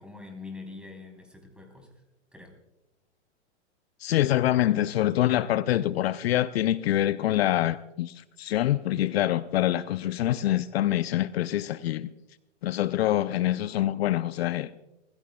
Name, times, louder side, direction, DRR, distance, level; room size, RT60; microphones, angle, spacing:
voice 1, 0.0-1.9 2.3-2.5, left 4 dB, 5° right, 3.9 m, -44 dB
voice 2, 4.0-12.1 12.6-14.7, left 13 dB, 60° left, 0.6 m, -25 dB
29.0 x 16.0 x 2.3 m
hypercardioid pair, 120°, 35 cm